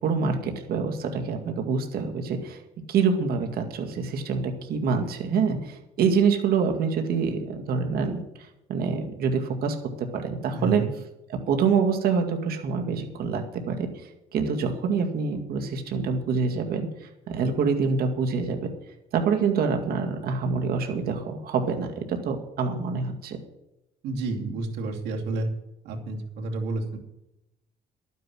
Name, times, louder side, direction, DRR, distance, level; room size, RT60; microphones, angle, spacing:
voice 1, 0.0-2.6 2.9-8.2 8.7-10.8 11.5-13.9 14.3-18.6 19.1-23.4, right 5 dB, 65° right, 4 dB, 2.1 m, -26 dB
voice 2, 10.5-10.9 24.0-25.5 25.8-27.0, right 3 dB, 80° right, 1 dB, 2.7 m, -30 dB
12.0 x 9.4 x 6.2 m, 0.90 s
cardioid pair, 110°, 17 cm